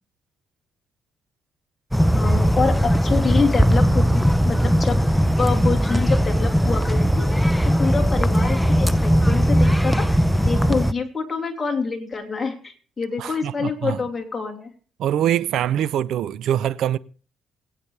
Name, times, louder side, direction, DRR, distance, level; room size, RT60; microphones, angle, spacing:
sound 1, 1.9-10.9, equal, ahead, 0.6 m, -19 dB
voice 1, 2.1-5.0 5.4-14.7, left 4 dB, 25° left, 3.0 m, -26 dB
voice 2, 13.2-14.0 15.0-17.0, right 11 dB, 80° right, 0.6 m, -23 dB
21.5 x 8.8 x 3.3 m
cardioid pair, 90°, 0 cm